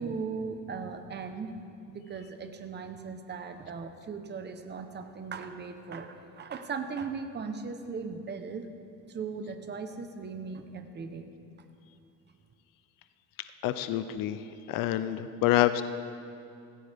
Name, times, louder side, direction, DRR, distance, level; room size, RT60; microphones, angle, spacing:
voice 1, 0.0-1.5 1.9-8.7 9.1-11.3, right 5 dB, 30° right, 7 dB, 1.0 m, -38 dB
voice 2, 13.6-14.4 14.7-15.8, left 14 dB, 85° left, 11 dB, 0.7 m, -27 dB
17.0 x 16.5 x 3.6 m, 2.5 s
cardioid pair, 125°, 33 cm